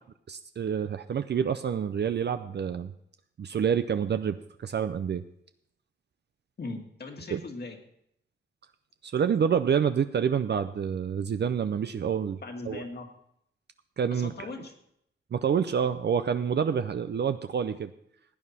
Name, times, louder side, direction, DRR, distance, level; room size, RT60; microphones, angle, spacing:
voice 1, 0.3-2.9 3.4-5.2 7.3-7.4 9.0-12.4 12.7-12.8 14.0-14.3 15.3-17.9, right 7 dB, 55° right, 10 dB, 0.5 m, -27 dB
voice 2, 6.6-7.8 12.4-13.1 14.1-14.7, left 3 dB, 50° left, 3 dB, 1.9 m, -39 dB
16.0 x 9.5 x 4.2 m, 0.73 s
wide cardioid pair, 105°, 21 cm